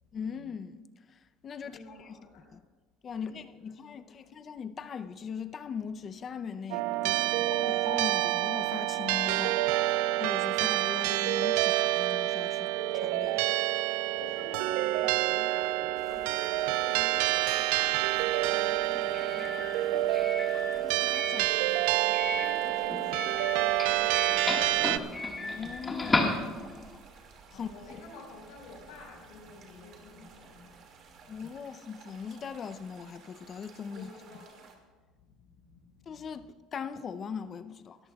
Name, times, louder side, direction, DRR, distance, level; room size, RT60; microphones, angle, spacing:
voice 1, 0.1-0.9 1.1-2.2 2.5-2.6 3.0-13.6 20.7-21.8 25.4-26.9 27.5-27.7 31.3-34.1 36.1-38.0, left 6 dB, 35° left, 0.6 m, -40 dB
voice 2, 1.6-2.5 3.1-4.3 7.1-8.0 14.1-21.1 22.3-25.8 27.5-31.6 33.9-34.6 35.2-36.4, left 3 dB, 80° left, 4.7 m, -50 dB
sound 1, 6.7-25.0, right 16 dB, 80° right, 0.3 m, -28 dB
sound 2, 15.9-34.8, right 5 dB, 50° right, 2.3 m, -54 dB
Doorbell, 17.9-27.0, left 2 dB, 20° left, 1.7 m, -35 dB
20.5 x 14.0 x 2.4 m
cardioid pair, 120°, 0 cm